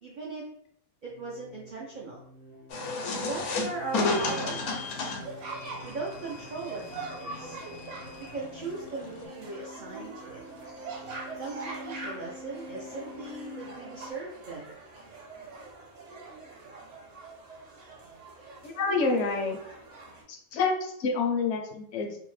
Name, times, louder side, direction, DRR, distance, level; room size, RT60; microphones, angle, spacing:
voice 1, 0.0-0.5 1.0-2.2 3.1-5.2 5.8-7.6 8.3-10.4 11.4-14.8, right 3 dB, 80° right, -4 dB, 0.4 m, -39 dB
sound 1, 1.1-14.1, left 1 dB, 35° left, 0.4 m, -48 dB
sound 2, 2.7-9.3, left 3 dB, 85° left, 1.1 m, -33 dB
sound 3, 3.6-20.2, right 3 dB, 65° right, 1.1 m, -44 dB
voice 2, 18.6-19.6 20.3-22.2, left 4 dB, 65° left, 3 dB, 0.8 m, -28 dB
2.8 x 2.0 x 3.1 m, 0.71 s
omnidirectional pair, 1.5 m